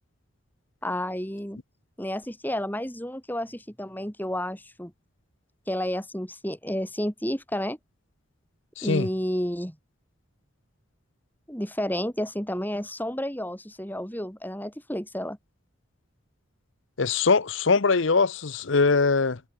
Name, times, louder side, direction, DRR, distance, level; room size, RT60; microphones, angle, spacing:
voice 1, 0.8-1.6 2.0-4.9 5.7-7.8 8.8-9.8 11.5-15.4, equal, 10° left, 4.5 m, -31 dB
voice 2, 8.8-9.1 17.0-19.4, left 4 dB, 65° left, 0.8 m, -22 dB
head